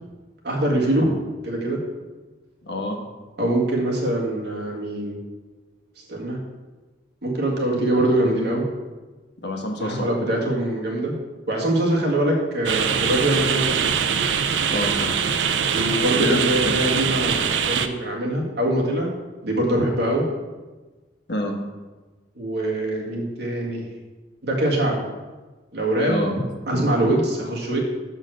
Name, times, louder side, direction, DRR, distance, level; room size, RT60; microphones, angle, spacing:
voice 1, 0.4-1.2 1.4-1.8 3.4-5.2 6.1-6.4 7.2-8.7 9.8-11.1 11.5-13.8 15.7-19.1 19.4-20.2 22.4-23.8 24.4-25.1 25.7-26.2 26.7-27.8, right 1 dB, 65° right, -2 dB, 1.8 m, -23 dB
voice 2, 2.6-3.0 9.4-10.0 14.7-15.2 16.1-16.4 21.3-21.5 26.1-26.3, left 1 dB, 65° left, 2 dB, 1.3 m, -26 dB
sound 1, 12.6-17.9, right 7 dB, 80° right, 0.5 m, -22 dB
6.4 x 5.7 x 6.3 m, 1.2 s
head